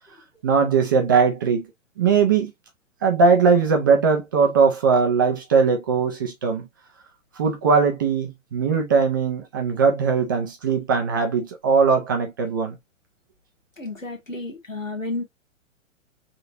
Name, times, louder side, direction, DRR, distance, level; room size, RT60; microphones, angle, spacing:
voice 1, 0.4-1.7 2.0-2.5 3.0-6.7 7.4-12.8, right 5 dB, 15° right, 0.4 m, -20 dB
voice 2, 13.8-15.2, left 2 dB, 90° left, 1.3 m, -31 dB
3.3 x 2.7 x 2.7 m
figure-of-eight pair, 115°, 38 cm